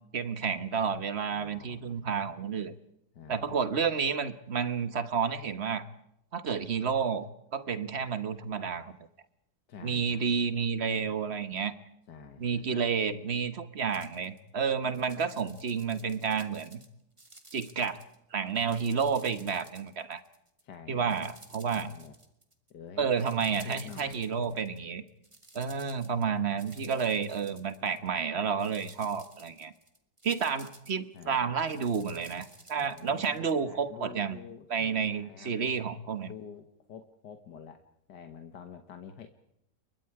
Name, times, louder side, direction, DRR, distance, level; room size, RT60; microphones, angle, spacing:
voice 1, 0.1-2.7 3.3-5.8 6.3-8.9 9.8-11.7 12.4-16.8 17.5-18.0 18.3-20.2 20.9-21.9 23.0-25.0 25.5-29.7 30.2-34.4 34.7-36.3, right 6 dB, 40° right, 13 dB, 1.4 m, -30 dB
voice 2, 1.3-1.9 3.1-3.5 9.7-10.3 12.1-12.7 14.8-15.1 20.6-21.3 21.7-22.2 22.7-23.1 23.5-24.6 26.4-27.0 31.1-31.5 32.8-35.6 36.3-37.8 38.1-39.3, left 7 dB, 75° left, 8 dB, 2.0 m, -48 dB
sound 1, 13.9-14.4 14.8-16.9 17.2-18.2 18.5-20.6 21.1-22.7 23.2-24.8 25.1-28.2 28.5-33.5, right 2 dB, 15° right, 2.3 m, -54 dB
29.5 x 23.0 x 4.8 m, 0.81 s
omnidirectional pair, 1.8 m